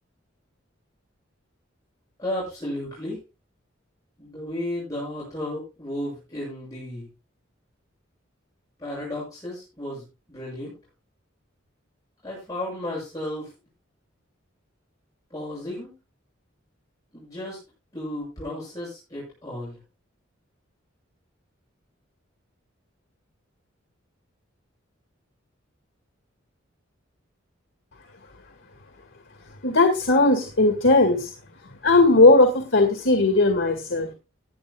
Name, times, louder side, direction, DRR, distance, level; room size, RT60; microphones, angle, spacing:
voice 1, 2.2-3.2 4.2-7.1 8.8-10.8 12.2-13.5 15.3-15.9 17.1-17.6 17.9-19.8, left 1 dB, 20° left, -5 dB, 7.5 m, -33 dB
voice 2, 29.6-31.3 31.8-34.1, left 2 dB, 70° left, 5 dB, 2.1 m, -18 dB
19.0 x 10.5 x 2.4 m, 0.28 s
head